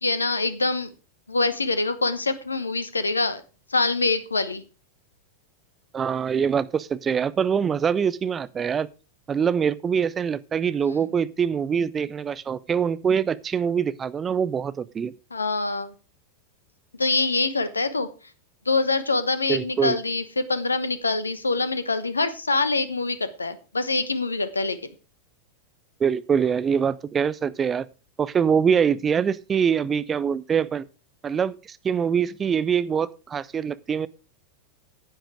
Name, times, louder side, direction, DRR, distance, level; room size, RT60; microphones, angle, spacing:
voice 1, 0.0-0.9 1.3-3.4 3.7-4.6 15.3-15.9 17.0-18.1 18.7-24.8, left 3 dB, 80° left, 1.1 m, -25 dB
voice 2, 5.9-8.9 9.3-15.1 19.5-20.0 26.0-27.9 28.2-30.8 31.2-34.1, right 7 dB, 20° right, 0.6 m, -24 dB
10.5 x 8.9 x 4.8 m
figure-of-eight pair, 90°, 0 cm